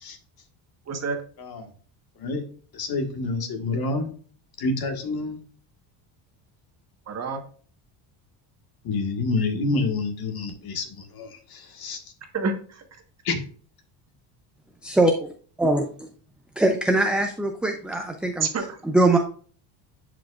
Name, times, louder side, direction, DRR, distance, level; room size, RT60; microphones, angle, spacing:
voice 1, 0.9-1.2 7.1-7.4 12.3-12.8 18.4-18.8, right 4 dB, 30° right, 5 dB, 1.3 m, -28 dB
voice 2, 1.4-1.7 2.2-2.4 2.7-4.1 4.6-5.4 8.8-12.0 13.2-13.4, left 3 dB, 50° left, 5 dB, 1.7 m, -28 dB
voice 3, 14.8-15.3 15.6-16.1 16.6-18.5 18.8-19.2, right 2 dB, ahead, 3 dB, 0.3 m, -22 dB
10.5 x 5.0 x 2.4 m, 0.43 s
cardioid pair, 135°, 48 cm